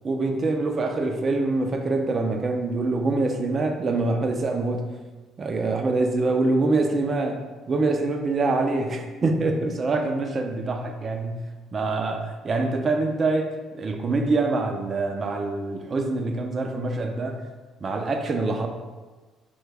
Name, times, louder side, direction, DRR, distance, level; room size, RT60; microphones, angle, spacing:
voice 1, 0.0-4.9 5.4-11.4 11.7-17.5 17.8-18.7, right 3 dB, 45° right, 5 dB, 0.4 m, -25 dB
3.3 x 2.3 x 3.2 m, 1.3 s
supercardioid pair, 65°, 0 cm